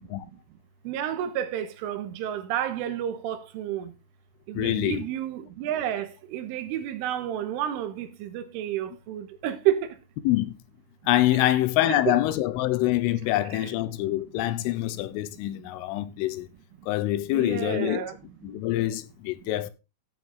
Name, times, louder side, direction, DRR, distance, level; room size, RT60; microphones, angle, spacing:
voice 1, 0.9-3.8 4.5-6.1 6.3-9.8 11.4-11.5 11.9-12.2 17.3-18.1, right 11 dB, 80° right, 3.6 m, -30 dB
voice 2, 4.5-5.0 10.2-10.6 11.1-16.5 16.9-18.0 18.4-19.7, left 15 dB, 80° left, 3.3 m, -25 dB
14.0 x 8.1 x 3.7 m
omnidirectional pair, 5.9 m